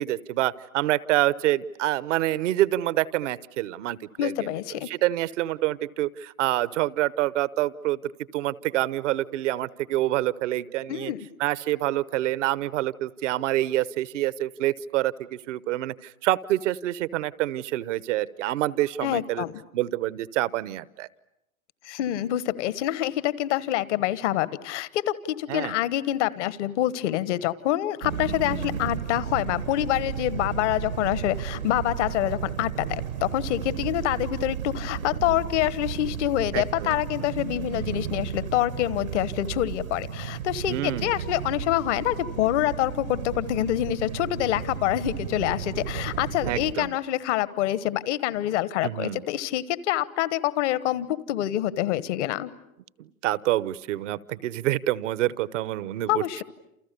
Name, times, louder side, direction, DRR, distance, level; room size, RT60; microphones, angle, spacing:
voice 1, 0.0-4.6 4.9-8.0 8.3-11.1 11.4-19.4 19.7-21.1 25.5-25.7 36.5-37.3 40.7-41.1 46.5-46.9 48.8-49.2 53.0-56.4, right 15 dB, 60° right, 18 dB, 1.0 m, -27 dB
voice 2, 4.2-4.9 10.9-11.2 19.0-19.6 21.8-52.5 56.1-56.4, left 14 dB, 55° left, 17 dB, 1.3 m, -26 dB
sound 1, 28.0-46.7, right 9 dB, 85° right, 1.9 m, -33 dB
29.0 x 28.5 x 6.9 m, 0.85 s
hypercardioid pair, 100°, 41 cm